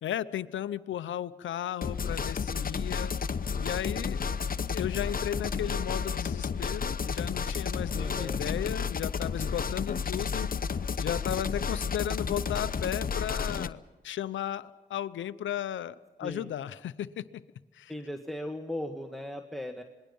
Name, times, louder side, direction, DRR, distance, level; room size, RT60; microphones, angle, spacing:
voice 1, 0.0-3.1 3.6-4.3 4.7-10.5 11.0-17.4 17.7-17.9, left 10 dB, 85° left, 14 dB, 0.7 m, -35 dB
sound 1, 1.8-13.7, left 6 dB, 50° left, 0.9 m, -31 dB
voice 2, 7.9-8.4 16.2-16.5 17.9-19.8, left 1 dB, ahead, 4 dB, 1.8 m, -37 dB
26.5 x 21.0 x 5.4 m, 1.2 s
supercardioid pair, 45°, 19 cm